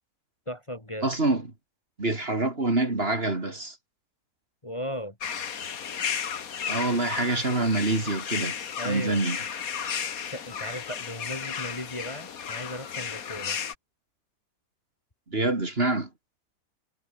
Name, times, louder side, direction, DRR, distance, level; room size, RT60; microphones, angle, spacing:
voice 1, 0.5-1.1 4.6-5.2 8.8-9.2 10.3-13.6, equal, 20° left, 2.7 m, -36 dB
voice 2, 1.0-1.5 2.0-3.8 6.7-8.5 8.8-9.4 15.3-16.1, right 2 dB, 35° right, 3.2 m, -26 dB
sound 1, 5.2-13.7, left 7 dB, 60° left, 1.8 m, -34 dB
omnidirectional pair, 1.7 m